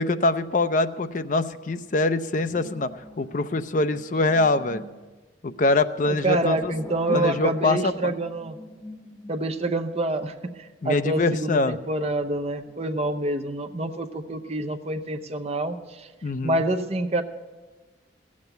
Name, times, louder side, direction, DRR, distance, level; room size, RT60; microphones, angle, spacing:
voice 1, 0.0-2.9 3.2-4.8 5.4-6.7 7.1-8.1 10.8-11.8 16.2-16.6, left 2 dB, 45° left, 11 dB, 0.5 m, -24 dB
sound 1, 2.3-5.0 6.0-9.6 10.2-10.3 12.0-14.6, equal, 10° left, 1.3 m, -46 dB
voice 2, 6.1-8.6 9.3-16.1 16.4-17.2, right 2 dB, 35° right, 6 dB, 0.7 m, -27 dB
15.0 x 7.4 x 8.0 m, 1.3 s
head